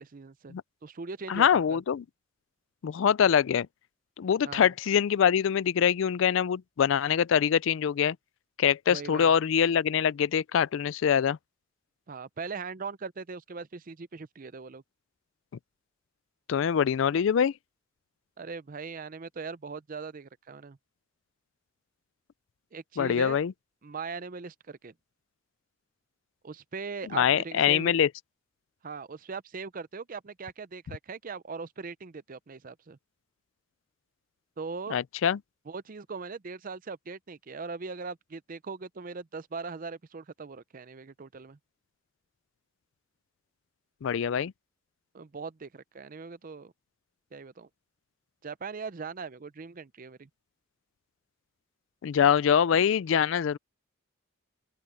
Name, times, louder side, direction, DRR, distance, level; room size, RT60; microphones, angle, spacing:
voice 1, 0.0-1.8 4.4-4.7 8.9-9.3 12.1-14.8 18.4-20.8 22.7-23.4 23.8-24.9 26.4-27.9 28.8-33.0 34.6-35.0 35.7-41.6 45.1-46.7 47.3-47.7 48.4-50.3, right 4 dB, 40° right, 0.5 m, -40 dB
voice 2, 1.3-2.0 2.8-3.7 4.2-8.2 8.6-11.4 16.5-17.5 23.0-23.5 27.1-28.1 34.9-35.4 44.0-44.5 52.0-53.6, left 8 dB, 65° left, 0.3 m, -24 dB
open air
head